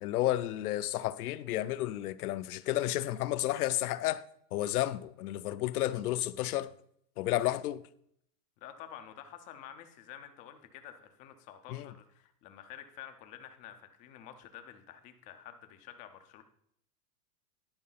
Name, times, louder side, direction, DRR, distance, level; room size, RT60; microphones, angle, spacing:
voice 1, 0.0-4.2 4.5-6.7 7.2-7.8 11.7-11.9, left 14 dB, 70° left, 0.6 m, -32 dB
voice 2, 8.6-16.4, left 10 dB, 20° left, 0.4 m, -49 dB
11.0 x 4.7 x 5.5 m
supercardioid pair, 140°, 47 cm